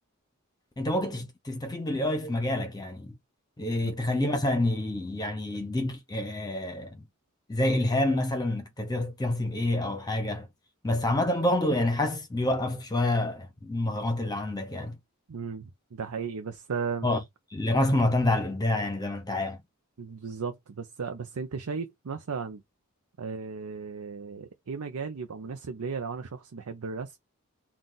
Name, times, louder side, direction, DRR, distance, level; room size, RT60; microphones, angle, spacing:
voice 1, 0.8-3.1 3.6-7.0 7.5-10.5 10.8-15.0 17.0-17.2 17.5-19.6, left 1 dB, 20° left, 0.9 m, -27 dB
voice 2, 15.3-17.1 20.0-22.6 23.2-27.2, right 5 dB, 90° right, 0.6 m, -35 dB
3.8 x 2.4 x 3.9 m
head